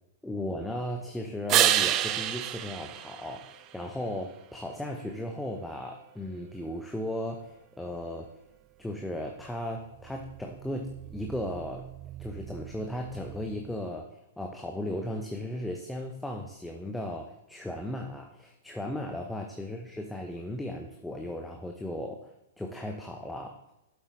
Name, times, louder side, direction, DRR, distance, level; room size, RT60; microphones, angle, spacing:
voice 1, 0.2-8.3 8.8-11.8 12.2-22.3 22.6-23.6, left 1 dB, 5° left, 2 dB, 0.8 m, -36 dB
sound 1, 1.5-4.0 9.8-13.8, right 12 dB, 30° right, 0.5 m, -31 dB
12.0 x 7.9 x 3.2 m, 0.91 s
figure-of-eight pair, 110°, 0 cm